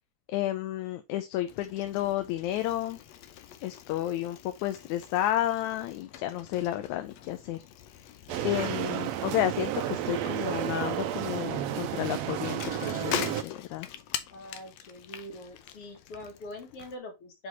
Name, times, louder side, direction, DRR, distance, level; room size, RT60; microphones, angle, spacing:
voice 1, 0.3-3.0 3.6-7.6 8.4-13.9, left 13 dB, 85° left, 2.1 m, -31 dB
Bicycle, 1.5-17.0, left 10 dB, 70° left, 1.8 m, -43 dB
sound 1, 8.3-13.4, right 12 dB, 75° right, 1.7 m, -32 dB
voice 2, 14.3-17.5, left 1 dB, 55° left, 2.7 m, -43 dB
6.1 x 5.1 x 3.3 m
omnidirectional pair, 3.3 m